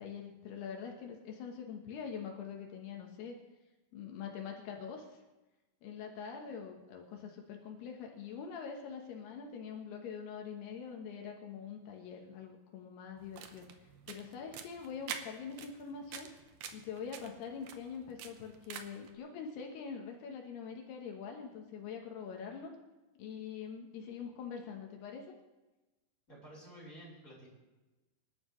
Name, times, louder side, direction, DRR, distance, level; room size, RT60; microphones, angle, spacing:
voice 1, 0.0-3.4 3.9-5.2 5.8-16.3 16.7-22.7 23.2-25.3, left 6 dB, 75° left, 2 dB, 3.1 m, -44 dB
sound 1, 13.2-19.1, right 8 dB, 80° right, 1.9 m, -48 dB
voice 2, 26.3-27.5, right 1 dB, 20° left, -5 dB, 5.3 m, -52 dB
25.5 x 12.0 x 3.2 m, 1.1 s
omnidirectional pair, 4.9 m